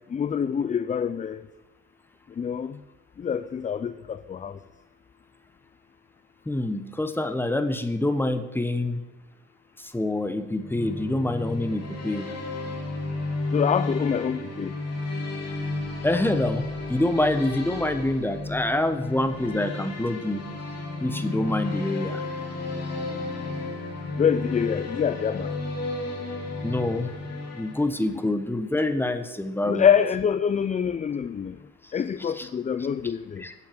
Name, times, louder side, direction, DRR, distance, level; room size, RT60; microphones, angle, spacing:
voice 1, 0.1-1.4 2.4-2.8 3.2-4.6 13.5-14.7 24.2-25.5 29.6-31.6 31.9-33.4, left 7 dB, 25° left, 0.4 m, -25 dB
voice 2, 6.5-9.0 9.8-12.3 16.0-20.4 21.0-22.2 26.6-27.1 27.5-29.9 32.4-32.5 33.4-33.5, left 1 dB, 5° left, 1.0 m, -26 dB
sound 1, 10.5-28.3, left 2 dB, 55° left, 2.9 m, -33 dB
9.4 x 7.1 x 7.7 m
cardioid pair, 90°, 30 cm